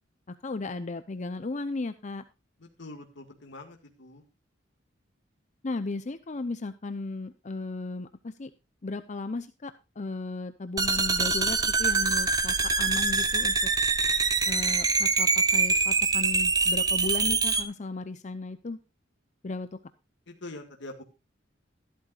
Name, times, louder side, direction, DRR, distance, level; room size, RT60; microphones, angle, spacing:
voice 1, 0.3-2.2 5.6-8.5 8.8-13.7 14.5-18.8 19.4-19.8, left 3 dB, 40° left, 11 dB, 0.6 m, -35 dB
voice 2, 2.8-4.2 20.3-21.0, left 2 dB, 65° left, 3 dB, 1.9 m, -44 dB
sound 1, 10.8-17.6, right 4 dB, 20° right, 1.0 m, -24 dB
14.0 x 12.0 x 2.4 m, 0.27 s
head